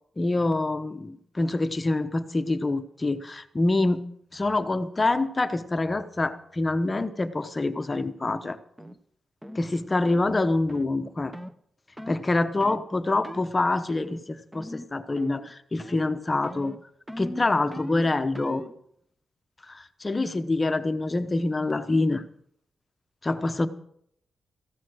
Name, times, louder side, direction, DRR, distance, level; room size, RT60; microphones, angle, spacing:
voice 1, 0.2-4.1 4.3-8.6 9.5-11.3 12.1-16.7 17.2-18.6 19.7-22.2 23.2-23.7, left 2 dB, 25° left, 10 dB, 0.9 m, -26 dB
sound 1, 8.8-9.0 9.4-9.6 10.0-10.3 10.7-10.9 11.3-11.6 12.0-12.2 12.6-12.9 13.2-13.5 13.9-14.2 14.5-14.9 15.2-15.5 15.8-16.1 16.4-18.8, equal, 10° right, 0.9 m, -40 dB
14.5 x 12.5 x 6.2 m, 0.70 s
cardioid pair, 90°, 0 cm